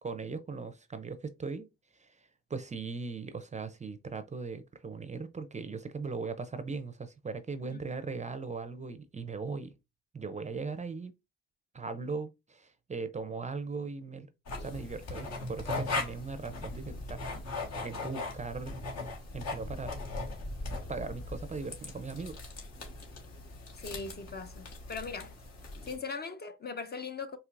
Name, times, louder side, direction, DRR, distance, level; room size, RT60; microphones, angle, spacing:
voice 1, 0.0-1.7 1.9-9.7 10.1-11.1 11.7-14.3 14.6-17.2 17.8-20.0 20.9-22.4, right 4 dB, 25° right, 0.5 m, -39 dB
sound 1, 14.5-26.0, left 3 dB, 60° left, 1.4 m, -39 dB
voice 2, 23.8-25.3 25.8-27.4, left 4 dB, 35° left, 0.6 m, -40 dB
4.5 x 2.8 x 2.5 m
cardioid pair, 90°, 30 cm